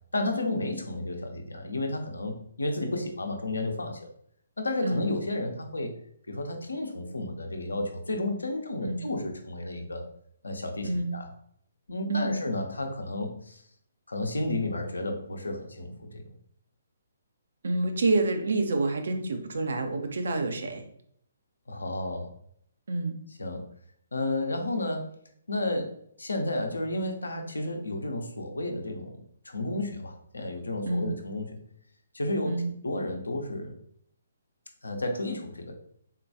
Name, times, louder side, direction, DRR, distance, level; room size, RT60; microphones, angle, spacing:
voice 1, 0.1-4.1 4.6-5.9 6.3-10.0 10.4-11.3 11.9-13.6 14.1-16.2 21.7-22.3 23.4-23.6 24.1-25.1 25.5-25.9 26.2-29.2 29.4-31.6 32.1-33.7 34.8-35.7, left 2 dB, 80° left, 4 dB, 0.6 m, -32 dB
voice 2, 12.1-12.4 17.6-20.8 22.9-23.2 30.9-31.1 32.5-32.7, right 2 dB, 65° right, 6 dB, 0.5 m, -28 dB
3.6 x 2.2 x 2.7 m, 0.67 s
figure-of-eight pair, 135°, 0 cm